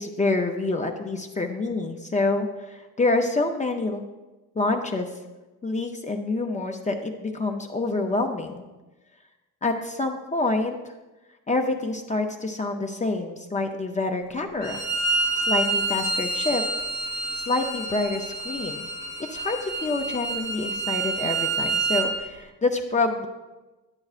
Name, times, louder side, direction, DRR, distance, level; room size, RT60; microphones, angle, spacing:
voice 1, 0.0-4.0 4.6-5.1 5.6-8.6 9.6-10.8 11.5-14.8 15.5-16.6 17.3-18.9 19.3-23.3, left 2 dB, 20° left, 3 dB, 0.5 m, -27 dB
Bowed string instrument, 14.6-22.1, right 3 dB, 50° right, 1.2 m, -28 dB
10.5 x 7.6 x 2.4 m, 1.1 s
cardioid pair, 100°, 34 cm